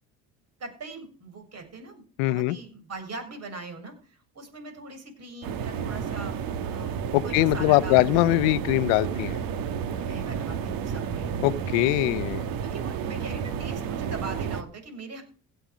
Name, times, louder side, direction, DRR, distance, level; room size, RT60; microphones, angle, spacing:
voice 1, 0.6-7.0 7.2-8.3 10.1-11.3 12.6-15.2, right 3 dB, 45° right, 7.1 m, -41 dB
voice 2, 2.2-2.6 7.1-9.4 11.4-12.4, left 18 dB, 90° left, 0.7 m, -22 dB
sound 1, 5.4-14.6, right 7 dB, 70° right, 1.9 m, -31 dB
16.5 x 8.9 x 5.1 m
supercardioid pair, 80°, 35 cm